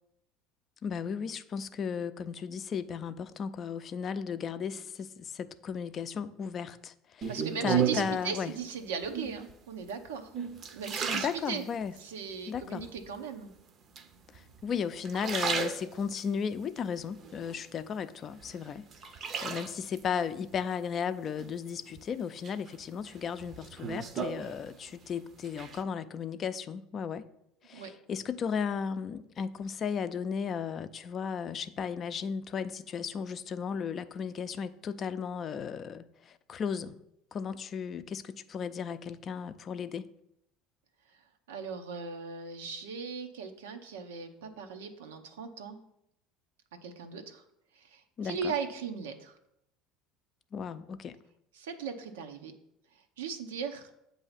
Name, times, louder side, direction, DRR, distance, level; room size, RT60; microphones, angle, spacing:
voice 1, 0.8-7.3 7.6-8.5 11.1-11.9 12.5-12.9 14.3-18.9 19.4-27.2 27.6-36.9 37.3-40.1 48.2-48.4 50.5-51.2, left 7 dB, 45° left, 11 dB, 0.4 m, -35 dB
sound 1, 7.2-8.3 9.0-9.5 10.1-12.0 12.5-13.1 14.0-14.6 15.0-16.3 16.8-18.0 18.4-20.0 21.4-22.0 22.4-25.1 25.3-25.8, right 7 dB, 45° right, 0.6 m, -34 dB
voice 2, 7.3-10.3 10.6-11.7 12.0-13.5 27.7-27.9 41.5-45.8 46.8-47.4 47.7-49.4 51.5-52.5 53.2-53.9, right 6 dB, 90° right, 7 dB, 0.7 m, -38 dB
7.7 x 2.7 x 5.7 m, 0.78 s
supercardioid pair, 85°, 0 cm